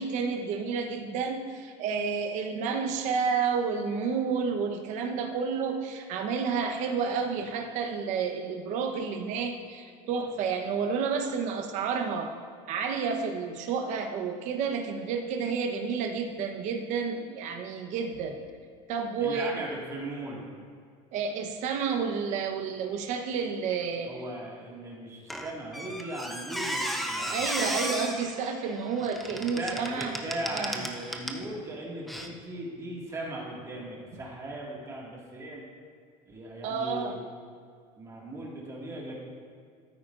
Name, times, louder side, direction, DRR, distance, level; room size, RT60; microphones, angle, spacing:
voice 1, 0.0-12.3 12.7-18.4 18.9-19.6 21.1-24.1 27.2-30.1 30.5-30.7 36.6-37.2, right 5 dB, 50° right, 4 dB, 1.0 m, -30 dB
voice 2, 19.2-20.4 24.0-27.7 29.3-35.6 36.3-37.2 38.0-39.1, right 1 dB, 20° right, -3 dB, 2.0 m, -38 dB
Squeak, 25.3-31.5 32.1-32.3, equal, ahead, 0.6 m, -35 dB
14.0 x 8.6 x 2.6 m, 2.1 s
cardioid pair, 150°, 15 cm